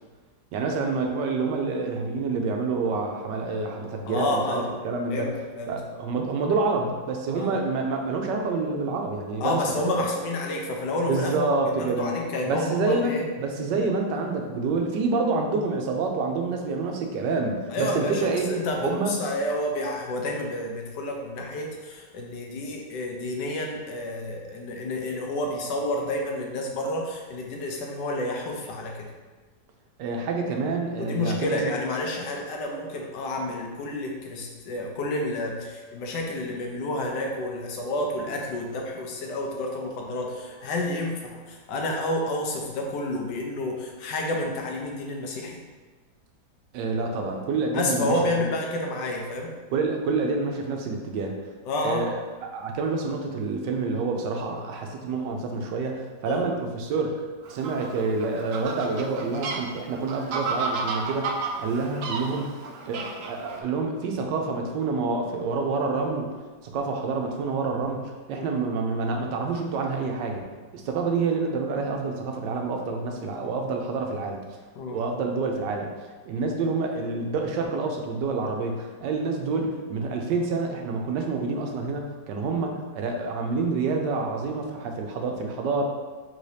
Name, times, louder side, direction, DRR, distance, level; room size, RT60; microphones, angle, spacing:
voice 1, 0.5-5.3 5.7-9.6 11.1-12.2 12.5-18.5 18.8-19.2 30.0-31.7 46.7-48.5 49.7-51.4 51.8-62.6 62.9-66.3 66.6-70.5 70.7-74.4 74.9-75.9 76.2-85.8, right 3 dB, 85° right, 2 dB, 1.3 m, -28 dB
voice 2, 4.0-4.7 5.1-5.8 7.3-7.5 9.4-11.5 11.8-13.2 17.7-29.1 31.0-45.6 47.7-49.5 51.7-52.1 56.3-56.5 68.3-68.5 74.8-75.0, left 1 dB, 80° left, 0 dB, 1.4 m, -30 dB
Fowl, 57.4-63.6, right 4 dB, 70° right, 0.8 m, -32 dB
4.9 x 3.9 x 2.7 m, 1.4 s
omnidirectional pair, 1.9 m